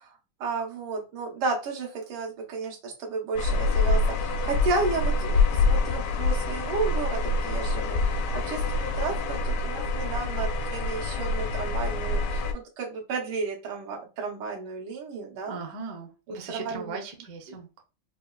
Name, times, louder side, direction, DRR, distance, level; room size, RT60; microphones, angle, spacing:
voice 1, 0.0-15.6 16.3-17.0 17.5-17.6, right 4 dB, 80° right, 0 dB, 1.8 m, -33 dB
Printer Close A, 3.4-12.5, left 3 dB, 80° left, 1.4 m, -26 dB
voice 2, 15.5-17.8, right 4 dB, 60° right, 3 dB, 1.0 m, -39 dB
5.4 x 2.1 x 2.3 m, 0.30 s
omnidirectional pair, 2.3 m